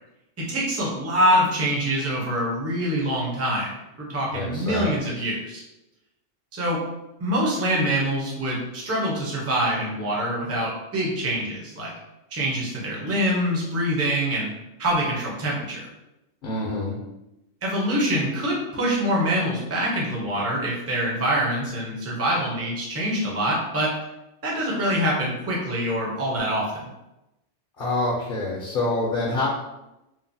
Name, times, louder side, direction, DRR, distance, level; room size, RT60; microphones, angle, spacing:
voice 1, 0.4-3.7 4.0-5.6 6.5-6.8 7.2-11.9 12.3-14.5 14.8-15.8 17.6-23.9 24.4-26.9, equal, 20° right, -4 dB, 0.4 m, -25 dB
voice 2, 4.3-4.9 16.4-17.0 27.8-29.5, left 2 dB, 55° left, -3 dB, 0.7 m, -26 dB
3.0 x 2.1 x 2.6 m, 0.94 s
omnidirectional pair, 1.2 m